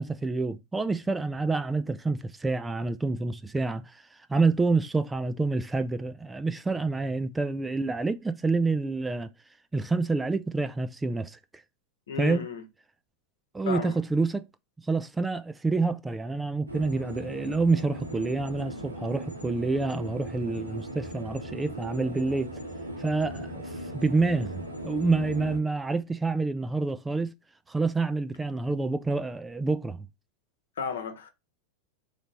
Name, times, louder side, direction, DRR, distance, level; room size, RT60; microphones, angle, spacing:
voice 1, 0.0-4.0 4.3-9.3 9.7-11.4 12.2-12.5 13.5-14.4 14.9-22.5 23.0-27.3 27.7-30.0, right 3 dB, 10° right, 0.3 m, -28 dB
voice 2, 12.1-12.6 13.7-14.0 30.8-31.3, left 6 dB, 65° left, 1.0 m, -33 dB
sound 1, 16.7-25.6, right 1 dB, 90° right, 1.4 m, -38 dB
3.9 x 3.2 x 4.1 m
figure-of-eight pair, 90°, 0 cm